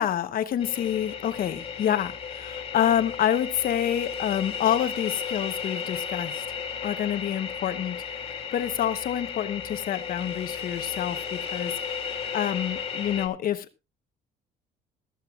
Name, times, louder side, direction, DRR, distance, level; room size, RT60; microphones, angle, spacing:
voice 1, 0.0-6.4 6.8-13.7, left 10 dB, 60° left, 1.0 m, -28 dB
sound 1, 0.6-13.3, left 7 dB, 35° left, 2.5 m, -34 dB
16.0 x 13.5 x 2.4 m
cardioid pair, 110°, 17 cm